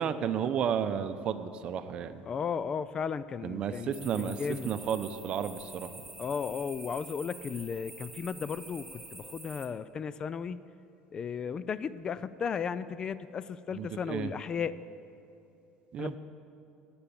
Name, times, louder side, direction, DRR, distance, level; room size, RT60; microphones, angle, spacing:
voice 1, 0.0-2.2 3.4-4.4 4.6-5.9 13.7-14.3 15.9-16.2, right 8 dB, 45° right, 10 dB, 0.7 m, -32 dB
voice 2, 2.3-4.7 6.2-10.6 11.1-14.7 16.0-16.2, left 6 dB, 35° left, 16 dB, 0.4 m, -35 dB
sound 1, 3.9-9.7, right 2 dB, 5° right, 2.4 m, -47 dB
18.5 x 7.0 x 7.2 m, 2.8 s
supercardioid pair, 110°, 2 cm